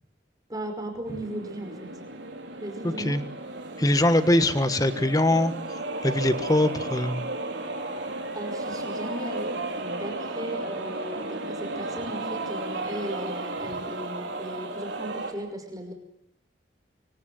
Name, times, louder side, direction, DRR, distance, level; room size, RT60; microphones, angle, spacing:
voice 1, 0.5-1.9 2.6-3.2 8.3-15.9, right 1 dB, 20° right, 5 dB, 5.3 m, -37 dB
sound 1, 1.1-15.3, right 2 dB, 80° right, 4.8 m, -34 dB
voice 2, 2.8-3.2 3.8-5.5 6.0-7.2, left 1 dB, 20° left, 11 dB, 1.4 m, -22 dB
25.0 x 25.0 x 7.7 m, 0.70 s
head